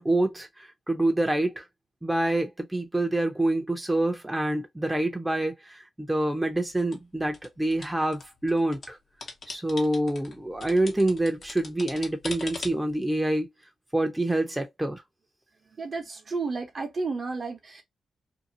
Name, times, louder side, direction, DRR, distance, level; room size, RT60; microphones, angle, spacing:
voice 1, 0.0-1.6 2.0-9.0 9.5-13.5 13.9-15.0, right 1 dB, 10° right, 0.7 m, -26 dB
sound 1, 6.4-8.9 9.2-13.0, left 3 dB, 60° left, 0.9 m, -41 dB
voice 2, 15.6-17.8, right 4 dB, 50° right, 0.9 m, -32 dB
2.7 x 2.3 x 2.7 m
cardioid pair, 65°, 0 cm